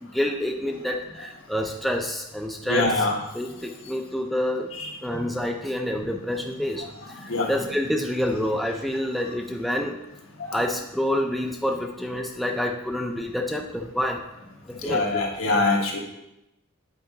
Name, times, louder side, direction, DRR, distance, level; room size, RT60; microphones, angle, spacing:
voice 1, 0.0-3.1 3.3-4.7 5.0-6.9 7.1-10.0 10.5-14.2 14.7-15.2, left 1 dB, ahead, 2 dB, 0.4 m, -28 dB
voice 2, 2.6-3.2 4.7-4.9 7.0-7.5 10.4-10.6 14.8-16.0, left 2 dB, 70° left, 0 dB, 1.4 m, -24 dB
8.1 x 4.8 x 3.8 m, 0.88 s
head